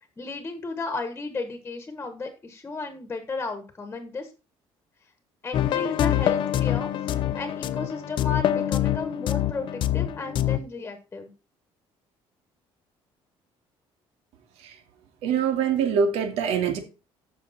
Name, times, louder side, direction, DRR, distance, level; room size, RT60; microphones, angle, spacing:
voice 1, 0.2-4.3 5.4-11.3, left 3 dB, 20° left, 7 dB, 1.5 m, -34 dB
sound 1, 5.5-10.6, left 11 dB, 50° left, 0.8 m, -25 dB
voice 2, 15.2-16.8, right 7 dB, 85° right, 5 dB, 2.7 m, -24 dB
14.0 x 6.4 x 4.3 m, 0.32 s
cardioid pair, 165°, 10 cm